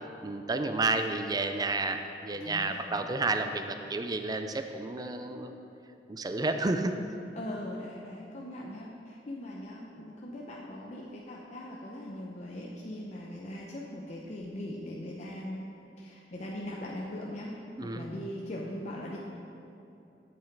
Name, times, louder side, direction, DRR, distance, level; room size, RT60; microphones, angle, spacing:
voice 1, 0.2-5.6 6.1-7.0 17.8-18.1, right 3 dB, 20° right, 7 dB, 0.4 m, -31 dB
voice 2, 2.4-3.0 7.4-15.6 16.0-17.5 17.8-19.2, left 1 dB, 40° left, -3 dB, 0.7 m, -40 dB
8.1 x 7.5 x 4.7 m, 2.8 s
head